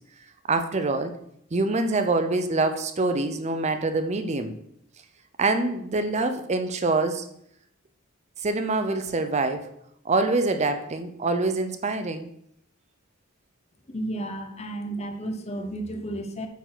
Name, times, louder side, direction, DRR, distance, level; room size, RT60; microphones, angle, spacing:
voice 1, 0.5-1.1 1.5-4.6 5.4-7.3 8.4-9.7 10.0-12.3, right 3 dB, 30° right, 9 dB, 0.5 m, -25 dB
voice 2, 13.9-16.5, right 1 dB, 30° left, 6 dB, 0.8 m, -32 dB
8.0 x 4.6 x 6.1 m, 0.73 s
head